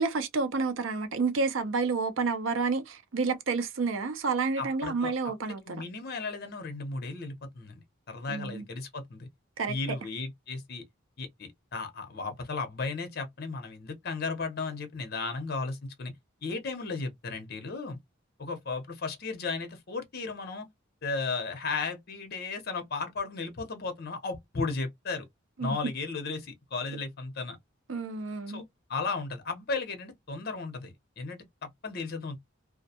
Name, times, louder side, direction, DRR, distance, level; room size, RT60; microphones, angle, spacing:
voice 1, 0.0-5.8 8.3-8.6 9.6-9.7 25.6-25.8 27.9-28.6, right 4 dB, 75° right, 0.6 m, -29 dB
voice 2, 4.6-5.1 5.6-9.3 9.7-10.8 11.2-16.1 16.4-18.0 18.4-20.7 21.0-25.2 25.6-27.6 28.5-28.6 28.9-32.4, left 4 dB, 50° left, 0.7 m, -35 dB
2.4 x 2.2 x 2.7 m
head